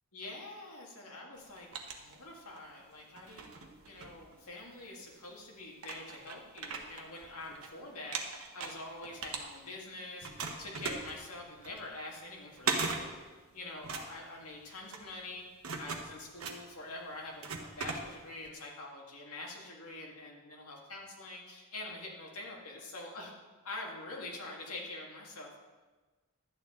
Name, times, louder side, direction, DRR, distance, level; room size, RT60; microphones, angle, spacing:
voice 1, 0.1-1.7 2.0-3.4 3.9-8.2 8.5-10.3 10.6-13.2 13.5-15.5 15.8-23.3 23.6-25.6, left 2 dB, 75° left, -1 dB, 2.0 m, -45 dB
sound 1, 1.4-2.7 3.1-4.8 5.4-5.5 5.8-7.7 8.0-9.9 10.2-18.5, right 4 dB, 65° right, 1.1 m, -39 dB
11.5 x 9.1 x 3.8 m, 1.3 s
head